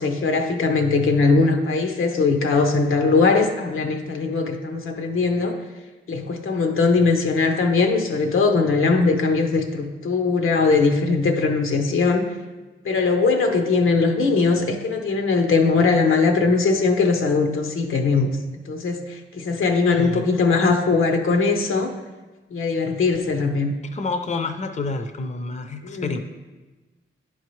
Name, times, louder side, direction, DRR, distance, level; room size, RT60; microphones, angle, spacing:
voice 1, 0.0-5.5 6.1-12.3 12.8-18.3 18.6-21.9 22.5-23.7 25.8-26.2, left 4 dB, 85° left, 4 dB, 0.8 m, -20 dB
voice 2, 19.9-20.2 23.9-26.2, left 3 dB, 35° left, 7 dB, 0.5 m, -28 dB
10.0 x 4.6 x 3.1 m, 1.2 s
cardioid pair, 80°, 21 cm